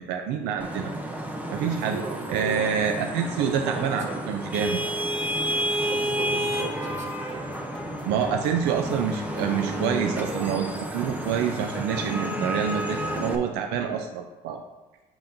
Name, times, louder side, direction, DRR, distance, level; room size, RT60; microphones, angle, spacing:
voice 1, 0.1-0.9 1.5-2.0 2.3-4.8 8.1-14.6, right 7 dB, 90° right, 5 dB, 0.5 m, -27 dB
Vehicle horn car horn honking / Traffic noise roadway noise, 0.6-13.4, right 1 dB, 10° right, 0.6 m, -31 dB
voice 2, 1.8-2.8 3.4-4.2 5.8-7.1, right 3 dB, 45° right, 1 dB, 0.9 m, -36 dB
sound 1, 5.7-11.4, left 1 dB, 5° left, 1.5 m, -44 dB
6.9 x 5.7 x 2.6 m, 1.1 s
cardioid pair, 125°, 17 cm